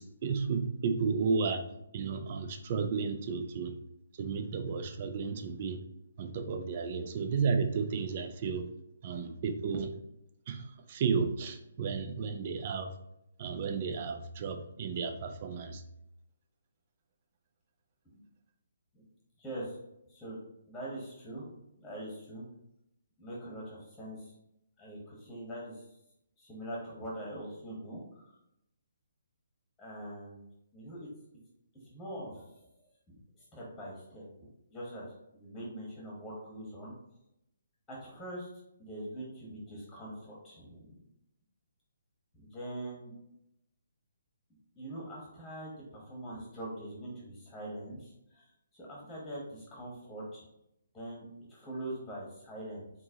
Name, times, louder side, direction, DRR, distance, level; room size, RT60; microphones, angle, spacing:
voice 1, 0.0-1.6 1.9-3.8 4.2-5.8 6.2-8.7 9.0-9.9 10.5-12.9 13.4-15.8, right 5 dB, 40° right, 6 dB, 0.5 m, -33 dB
voice 2, 19.4-19.8 20.1-20.4 20.7-21.5 21.8-22.4 23.2-24.3 24.8-25.7 26.4-28.3 29.8-30.4 30.7-31.1 31.9-32.5 33.1-33.2 33.5-36.9 37.9-38.5 38.8-41.0 42.3-43.1 44.8-50.4 50.9-51.2 51.5-52.9, right 1 dB, 5° left, -5 dB, 1.4 m, -43 dB
4.6 x 4.0 x 2.9 m, 0.81 s
figure-of-eight pair, 135°, 0 cm